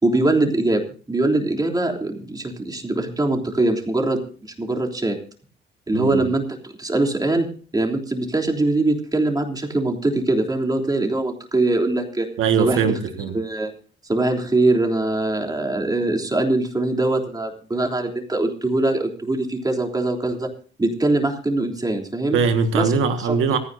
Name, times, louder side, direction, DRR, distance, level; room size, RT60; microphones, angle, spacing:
voice 1, 0.0-5.2 5.9-12.3 12.6-12.8 13.3-13.7 14.1-20.5 20.8-22.4 22.7-22.9 23.2-23.4, right 2 dB, 20° right, 2 dB, 3.4 m, -22 dB
voice 2, 5.9-6.3 12.4-13.3 22.3-23.6, right 5 dB, 90° right, 6 dB, 1.8 m, -21 dB
26.5 x 10.0 x 2.7 m, 0.42 s
cardioid pair, 90°, 20 cm